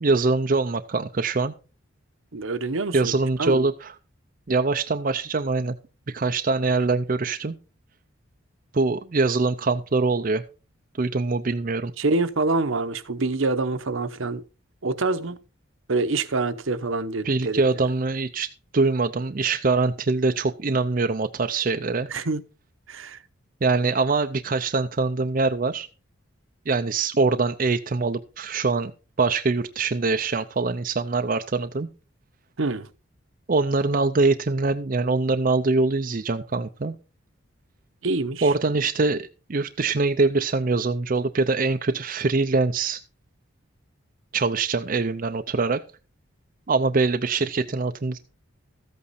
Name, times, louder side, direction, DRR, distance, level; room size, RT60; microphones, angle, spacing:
voice 1, 0.0-1.5 2.9-3.9 4.5-5.7 6.1-7.5 8.7-10.4 11.0-11.9 17.2-18.5 18.7-22.1 23.6-25.9 26.7-28.9 29.2-31.9 33.5-36.9 38.4-43.0 44.3-45.8 46.7-48.2, right 3 dB, 40° right, 0.5 m, -23 dB
voice 2, 2.3-3.1 3.4-3.7 12.0-14.4 14.8-15.4 15.9-17.6 22.1-22.4 22.9-23.2 32.6-32.9 38.0-38.5, right 3 dB, 70° right, 0.9 m, -26 dB
14.0 x 8.5 x 4.2 m
head